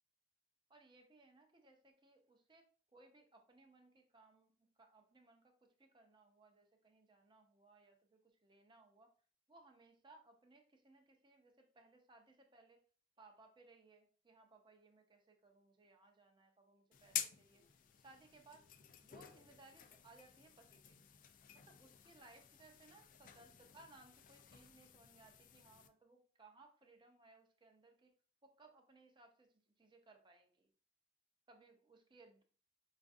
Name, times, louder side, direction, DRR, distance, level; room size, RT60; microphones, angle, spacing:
voice 1, 0.7-9.1 9.5-12.8 13.2-17.6 18.0-18.7 19.0-21.0 21.5-28.1 28.4-30.7 31.5-32.4, right 3 dB, 25° right, 4 dB, 0.5 m, -65 dB
sound 1, 16.9-25.9, left 9 dB, 45° left, 0.3 m, -50 dB
4.9 x 2.4 x 2.5 m, 0.41 s
head